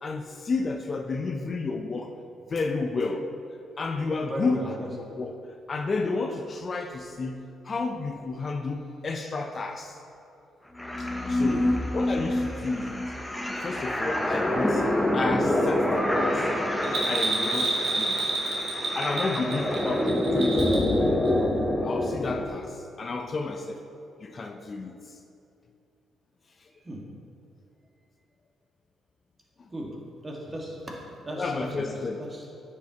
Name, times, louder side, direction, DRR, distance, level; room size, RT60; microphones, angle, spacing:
voice 1, 0.0-2.2 2.5-3.3 3.8-5.3 5.7-10.0 11.0-13.1 13.6-16.5 17.0-18.6 18.9-21.1 21.8-23.8 24.2-25.0 31.4-32.3, left 3 dB, 40° left, 5 dB, 0.5 m, -31 dB
voice 2, 4.2-4.9 11.4-11.9 26.8-27.0 29.7-29.9 30.2-32.5, equal, 25° right, -2 dB, 1.6 m, -36 dB
sound 1, 10.8-22.5, left 1 dB, 10° left, 0.7 m, -26 dB
Bell, 16.8-20.9 21.2-21.3, right 2 dB, 65° right, 1.8 m, -29 dB
9.8 x 6.4 x 2.8 m, 2.6 s
cardioid pair, 90°, 0 cm